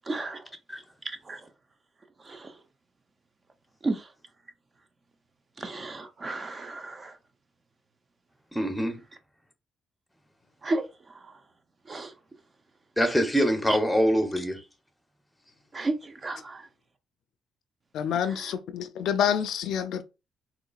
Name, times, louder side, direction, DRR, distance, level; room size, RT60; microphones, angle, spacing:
voice 1, 0.1-0.4 1.0-1.4 2.3-2.5 3.8-4.1 5.6-7.1 10.6-10.9 11.9-12.1 13.7-13.8 15.7-16.7 18.3-18.5, right 2 dB, 35° right, 0.5 m, -33 dB
voice 2, 8.5-9.0 13.0-14.6, equal, 5° left, 0.8 m, -24 dB
voice 3, 17.9-20.0, left 8 dB, 75° left, 0.4 m, -27 dB
3.7 x 3.0 x 2.3 m
cardioid pair, 90°, 0 cm